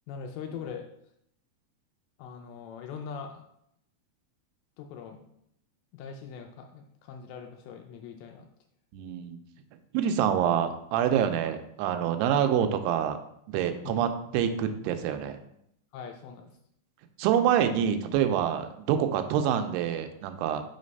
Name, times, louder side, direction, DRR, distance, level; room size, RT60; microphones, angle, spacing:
voice 1, 0.1-0.9 2.2-3.4 4.8-5.2 5.9-8.5 13.8-14.0 15.9-16.6, left 6 dB, 80° left, 4 dB, 2.2 m, -41 dB
voice 2, 8.9-9.4 9.9-13.2 13.5-15.4 17.2-20.6, right 9 dB, 85° right, 8 dB, 2.6 m, -26 dB
5.8 x 3.2 x 5.2 m, 0.74 s
omnidirectional pair, 4.7 m